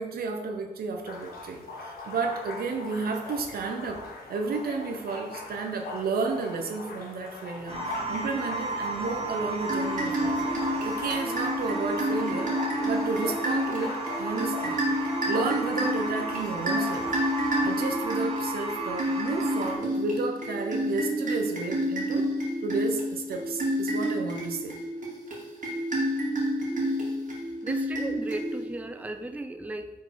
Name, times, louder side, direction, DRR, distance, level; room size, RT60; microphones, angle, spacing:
voice 1, 0.0-4.0 4.3-10.4 10.6-17.1 17.6-22.3 22.6-24.8, right 4 dB, 80° right, 4 dB, 0.9 m, -32 dB
sound 1, 1.0-17.9, left 3 dB, 85° left, 1.1 m, -41 dB
sound 2, 7.7-19.8, right 2 dB, 40° right, 1.4 m, -34 dB
sound 3, 9.6-28.9, equal, 55° right, 2.1 m, -30 dB
voice 2, 27.6-29.9, right 2 dB, 10° right, 8 dB, 0.5 m, -36 dB
5.3 x 4.0 x 5.2 m, 1.0 s
cardioid pair, 65°, 15 cm